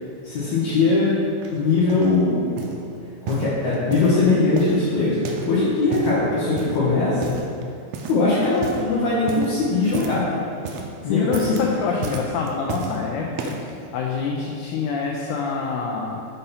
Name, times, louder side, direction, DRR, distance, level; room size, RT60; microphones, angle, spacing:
voice 1, 0.2-1.2 1.5-2.5 2.7-2.8 3.2-7.4 8.1-10.4 11.0-11.6, left 3 dB, 65° left, -8 dB, 1.7 m, -21 dB
sound 1, 1.4-2.2 2.6-2.8 3.2-4.2 4.6-5.5 5.8-6.2 6.6-6.9 7.2-7.6 7.9-8.3 8.5-8.9 9.3-10.3 10.5-10.9 11.2-11.7 12.0-13.0 13.3-13.7 14.4-14.5, right 5 dB, 80° right, 1.5 m, -33 dB
voice 2, 11.0-13.3 13.9-16.2, left 5 dB, 85° left, -2 dB, 2.0 m, -26 dB
6.7 x 2.8 x 5.4 m, 2.6 s
omnidirectional pair, 3.5 m